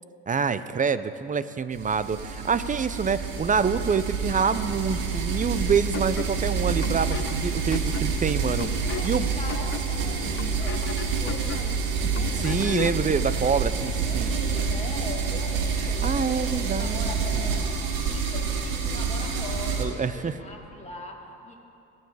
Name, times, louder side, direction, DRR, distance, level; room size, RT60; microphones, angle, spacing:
voice 1, 0.3-9.3 12.4-14.3 15.8-17.1 17.3-17.5 19.8-20.3, right 6 dB, 25° right, 14 dB, 0.5 m, -26 dB
sound 1, 1.7-19.8, right 5 dB, 70° right, 1.7 m, -28 dB
voice 2, 2.3-2.9 7.0-7.5 8.9-11.9 12.1-12.5 13.8-17.6 18.0-21.5, left 2 dB, 20° left, -1 dB, 2.5 m, -41 dB
sound 2, 5.9-13.1, left 10 dB, 35° left, 0.5 m, -38 dB
20.5 x 7.1 x 4.8 m, 2.7 s
supercardioid pair, 80°, 36 cm